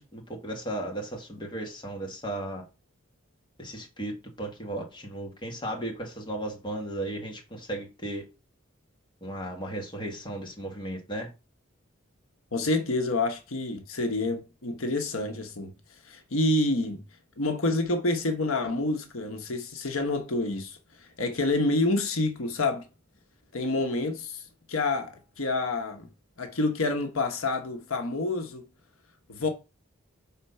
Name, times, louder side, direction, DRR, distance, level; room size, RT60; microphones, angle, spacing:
voice 1, 0.0-2.6 3.6-4.1 4.4-8.2 9.2-11.3, right 1 dB, 25° left, 1.9 m, -35 dB
voice 2, 12.5-15.7 16.0-17.0 17.4-22.8 23.5-24.4 24.7-26.1 26.4-28.6 29.3-29.5, left 2 dB, 85° left, 1.2 m, -28 dB
6.0 x 4.4 x 5.6 m
head